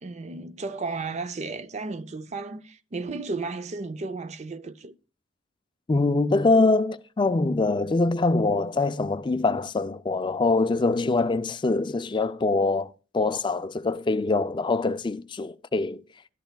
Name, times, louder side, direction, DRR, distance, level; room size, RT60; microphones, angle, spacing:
voice 1, 0.0-4.9, right 3 dB, 35° right, 0.5 m, -34 dB
voice 2, 5.9-16.0, left 3 dB, 25° left, 0.3 m, -24 dB
12.5 x 10.5 x 2.3 m
head